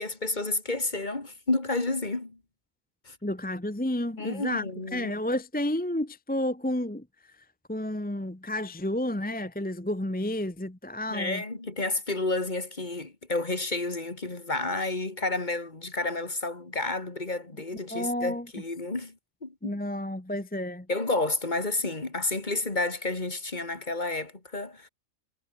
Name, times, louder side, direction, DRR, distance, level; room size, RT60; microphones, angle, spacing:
voice 1, 0.0-2.4 3.1-3.2 4.2-5.1 11.1-19.2 19.4-19.8 20.9-24.9, left 2 dB, 35° left, 2.6 m, -30 dB
voice 2, 3.2-4.6 4.9-7.0 7.7-11.4 17.9-18.5 19.6-20.9, left 1 dB, 5° left, 1.0 m, -31 dB
omnidirectional pair, 1.4 m